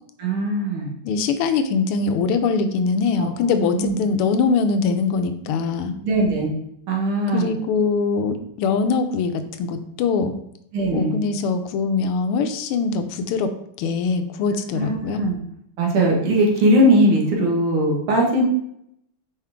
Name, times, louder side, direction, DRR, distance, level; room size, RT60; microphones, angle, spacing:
voice 1, 0.2-0.9 3.2-3.3 3.6-4.0 6.0-6.5 6.9-7.5 10.7-11.1 14.7-15.4 15.8-18.4, right 1 dB, 70° right, -1 dB, 2.2 m, -20 dB
voice 2, 1.0-5.9 7.3-10.4 10.9-13.5 13.8-15.2, left 5 dB, 85° left, 8 dB, 1.5 m, -22 dB
5.7 x 4.9 x 3.6 m, 0.75 s
omnidirectional pair, 2.4 m